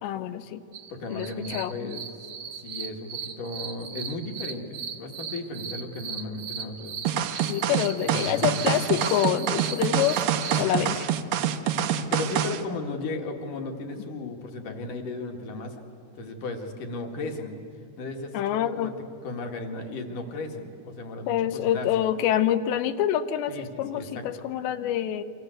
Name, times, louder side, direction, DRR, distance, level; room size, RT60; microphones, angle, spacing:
voice 1, 0.0-0.6 1.1-2.0 7.5-10.3 10.6-11.0 18.3-18.9 21.3-25.2, left 11 dB, 80° left, 11 dB, 3.1 m, -26 dB
sound 1, 0.7-10.6, right 6 dB, 55° right, 1.7 m, -38 dB
voice 2, 0.9-2.0 2.6-7.1 8.0-8.8 10.5-10.7 11.6-15.8 16.2-17.6 18.0-18.9 19.2-22.0 23.5-24.3, left 2 dB, 55° left, 3 dB, 3.2 m, -35 dB
sound 2, 7.1-12.6, right 9 dB, 70° right, 2.2 m, -26 dB
29.0 x 24.5 x 7.9 m, 2.6 s
omnidirectional pair, 5.0 m